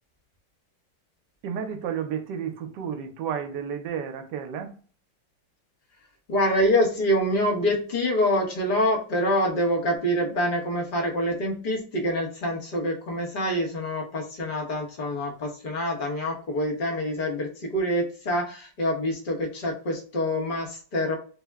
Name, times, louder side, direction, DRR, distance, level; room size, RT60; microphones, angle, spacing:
voice 1, 1.4-4.7, right 8 dB, 75° right, 1.2 m, -32 dB
voice 2, 6.3-21.1, equal, 35° left, 0.9 m, -26 dB
3.4 x 2.1 x 3.4 m
omnidirectional pair, 2.0 m